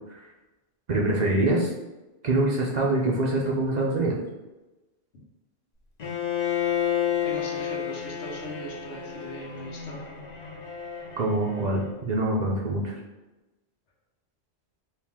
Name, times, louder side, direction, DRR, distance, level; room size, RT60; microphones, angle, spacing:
voice 1, 0.9-1.7 2.2-4.2 11.2-13.0, right 2 dB, 50° right, -3 dB, 0.6 m, -24 dB
Bowed string instrument, 6.0-12.0, left 9 dB, 45° left, 0.7 m, -31 dB
voice 2, 7.2-10.0, left 1 dB, 85° left, -2 dB, 1.2 m, -39 dB
4.5 x 2.4 x 3.5 m, 1.1 s
omnidirectional pair, 1.1 m